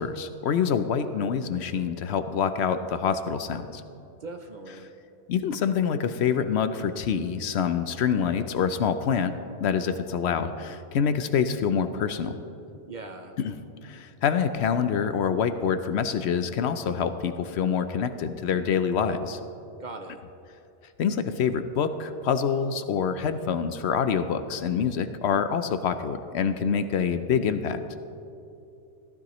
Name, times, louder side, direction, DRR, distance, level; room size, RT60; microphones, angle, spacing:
voice 1, 0.0-3.8 5.3-9.3 9.6-12.4 13.4-13.5 13.8-19.4 21.0-27.8, left 7 dB, 70° left, 10 dB, 0.8 m, -26 dB
voice 2, 4.2-4.9 12.9-13.4 19.8-20.2, right 3 dB, 45° right, 5 dB, 0.7 m, -40 dB
15.0 x 13.0 x 3.0 m, 2.7 s
omnidirectional pair, 1.3 m